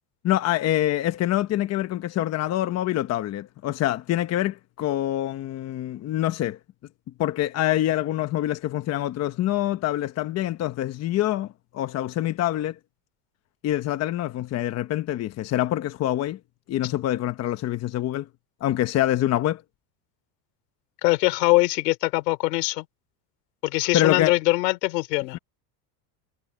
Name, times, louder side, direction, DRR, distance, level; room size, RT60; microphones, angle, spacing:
voice 1, 0.2-6.6 7.2-12.7 13.6-16.4 16.7-18.3 18.6-19.6 23.9-24.3 25.3-25.4, left 13 dB, 35° left, 1.1 m, -25 dB
voice 2, 21.0-22.8 23.6-25.4, left 22 dB, 85° left, 3.5 m, -22 dB
supercardioid pair, 145°, 48 cm